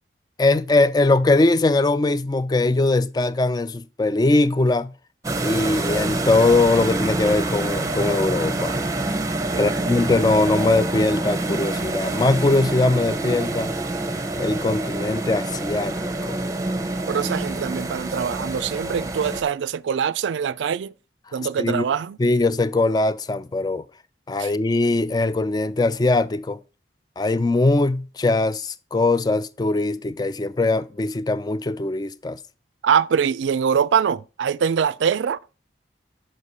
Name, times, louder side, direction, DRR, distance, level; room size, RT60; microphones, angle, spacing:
voice 1, 0.4-4.9 5.4-8.8 9.6-13.7 14.4-16.4 21.4-21.9 22.2-23.8 24.3-26.6 27.2-32.4, left 2 dB, 20° left, 0.3 m, -21 dB
sound 1, 5.2-19.4, right 2 dB, 20° right, 0.7 m, -26 dB
voice 2, 17.1-20.9 21.3-22.2 24.4-24.5 32.8-35.4, right 7 dB, 80° right, 0.4 m, -23 dB
6.4 x 5.1 x 5.4 m
head